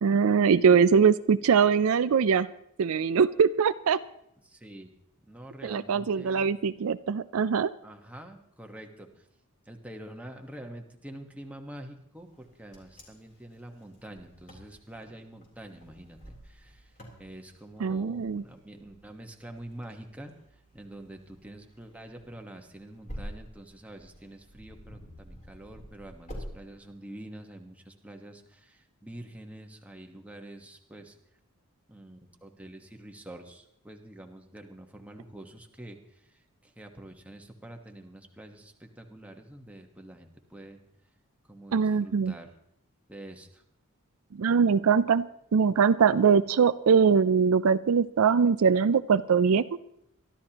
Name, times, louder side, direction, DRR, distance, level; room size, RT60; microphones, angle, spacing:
voice 1, 0.0-2.5 2.8-4.0 5.6-7.7 17.8-18.4 41.7-42.3 44.3-45.3 45.5-49.6, right 6 dB, 70° right, 14 dB, 0.4 m, -22 dB
voice 2, 4.4-4.9 5.3-6.5 7.8-9.2 9.7-16.9 17.2-20.3 20.7-31.1 31.9-36.0 36.6-40.8 41.5-42.5 43.1-43.6, right 1 dB, 5° right, 3 dB, 1.3 m, -46 dB
Wind, 12.3-26.5, equal, 35° left, 3.6 m, -48 dB
23.5 x 13.0 x 3.0 m, 0.75 s
head